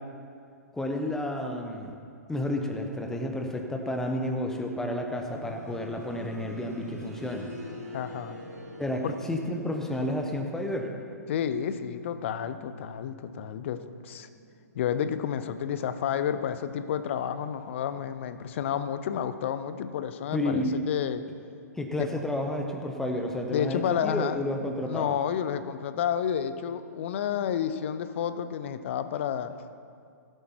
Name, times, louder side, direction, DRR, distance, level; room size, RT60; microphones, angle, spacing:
voice 1, 0.7-2.0 2.3-7.5 8.8-10.9 20.3-20.7 21.8-25.2, left 1 dB, 5° left, 3 dB, 1.1 m, -31 dB
sound 1, 5.3-16.0 16.3-16.4 17.3-17.4, equal, 75° right, 3.5 m, -46 dB
voice 2, 7.9-8.4 9.0-9.1 11.3-14.3 14.7-21.2 22.0-22.1 23.5-24.4 24.8-29.6, left 9 dB, 45° left, 12 dB, 0.6 m, -30 dB
17.0 x 8.1 x 4.4 m, 2.3 s
figure-of-eight pair, 115°, 9 cm